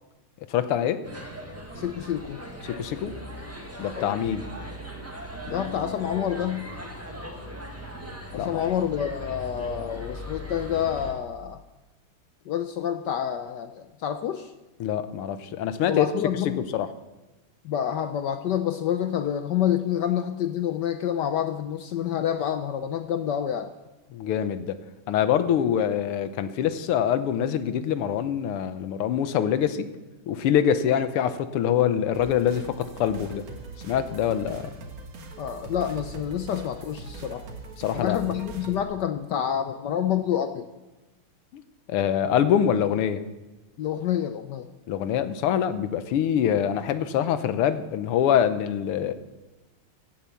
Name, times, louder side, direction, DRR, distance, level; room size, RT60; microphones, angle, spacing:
voice 1, 0.5-1.0 2.7-3.1 3.8-4.4 8.3-8.5 14.8-16.1 16.6-16.9 24.1-24.8 25.1-29.9 30.3-33.4 33.8-34.7 37.8-38.4 41.5-41.6 41.9-43.3 44.9-49.1, left 9 dB, 85° left, 12 dB, 1.8 m, -24 dB
sound 1, 1.0-11.1, equal, 10° right, 1.2 m, -39 dB
voice 2, 1.7-2.4 4.0-4.2 5.5-6.7 8.3-11.6 12.5-14.5 15.8-16.6 17.6-23.7 30.9-31.0 35.4-37.5 37.9-40.7 43.8-44.7, left 9 dB, 70° left, 9 dB, 1.0 m, -28 dB
sound 2, 32.1-38.8, right 4 dB, 70° right, 2.3 m, -41 dB
16.0 x 9.0 x 7.1 m, 1.1 s
omnidirectional pair, 2.4 m